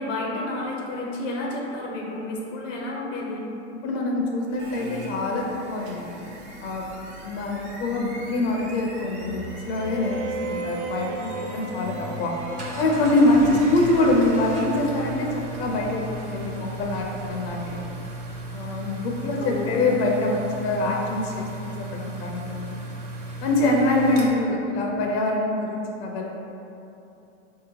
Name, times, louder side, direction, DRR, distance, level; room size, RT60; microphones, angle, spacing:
voice 1, 0.0-3.5 13.3-13.5 19.4-19.7, left 2 dB, 85° left, -2 dB, 0.9 m, -31 dB
voice 2, 3.8-6.1 6.6-6.9 7.2-12.3 12.8-17.9 18.5-22.8 23.4-26.4, left 2 dB, 55° left, -1 dB, 0.5 m, -24 dB
sound 1, 4.5-24.3, right 2 dB, 65° right, 0.9 m, -38 dB
Bowed string instrument, 9.7-14.8, right 3 dB, 90° right, 0.5 m, -35 dB
sound 2, 12.4-18.7, right 1 dB, 20° right, 0.5 m, -41 dB
4.3 x 2.8 x 2.7 m, 2.8 s
supercardioid pair, 135°, 37 cm